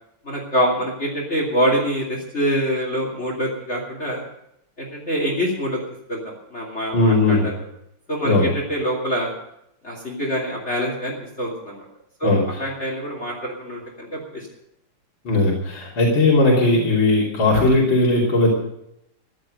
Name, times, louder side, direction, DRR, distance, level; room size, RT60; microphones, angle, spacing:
voice 1, 0.2-4.2 4.8-5.8 6.1-7.6 8.1-9.3 9.8-11.8 12.2-14.5, equal, 30° left, -2 dB, 3.1 m, -25 dB
voice 2, 6.9-7.5 8.2-8.5 12.2-12.6 15.2-18.5, left 2 dB, 60° left, -4 dB, 3.9 m, -18 dB
15.0 x 11.5 x 6.4 m, 0.79 s
omnidirectional pair, 2.4 m